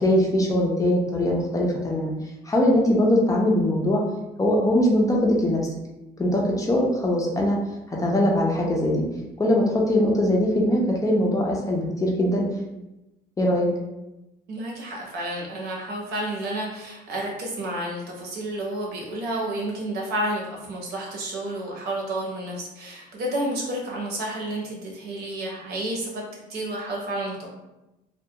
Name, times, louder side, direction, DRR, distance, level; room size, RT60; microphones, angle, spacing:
voice 1, 0.0-2.1 2.4-4.0 4.4-5.6 6.2-7.6 7.9-9.0 9.4-12.5 13.4-13.7, left 1 dB, 20° left, -2 dB, 0.5 m, -21 dB
voice 2, 14.5-20.4 20.7-26.2 26.5-27.5, right 1 dB, 75° right, -2 dB, 0.8 m, -30 dB
2.2 x 2.2 x 2.8 m, 0.97 s
cardioid pair, 110°, 17 cm